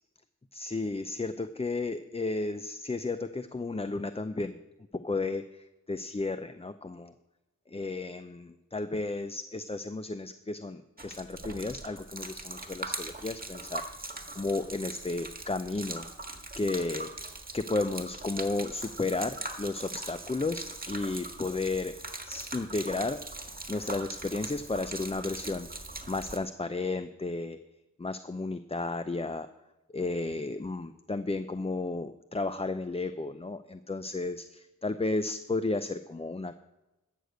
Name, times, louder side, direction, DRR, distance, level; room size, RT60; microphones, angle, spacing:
voice 1, 0.5-4.6 4.9-7.1 7.7-16.1 16.6-17.1 17.5-22.0 22.2-23.2 23.7-25.7 26.1-27.6 28.0-29.5 29.9-36.6, left 3 dB, 20° left, 10 dB, 0.5 m, -33 dB
Gurgling / Liquid, 11.0-26.4, right 2 dB, 30° right, 1.6 m, -41 dB
13.0 x 6.6 x 7.9 m, 1.0 s
wide cardioid pair, 80°, 32 cm